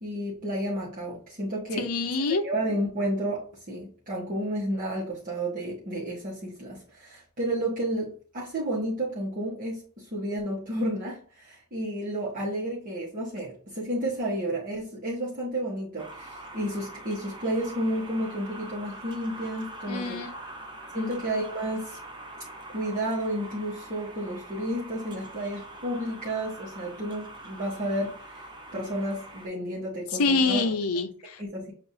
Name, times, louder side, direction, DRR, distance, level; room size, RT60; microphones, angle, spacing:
voice 1, 0.0-1.9 2.3-20.2 20.9-22.0 22.7-30.6 31.4-31.7, right 1 dB, 40° right, -6 dB, 1.2 m, -31 dB
voice 2, 1.8-2.4 19.9-20.3 20.9-21.2 30.2-31.4, left 3 dB, 75° left, 9 dB, 0.6 m, -26 dB
sound 1, 16.0-29.5, right 1 dB, 20° right, 0.6 m, -44 dB
6.7 x 2.5 x 2.8 m, 0.42 s
head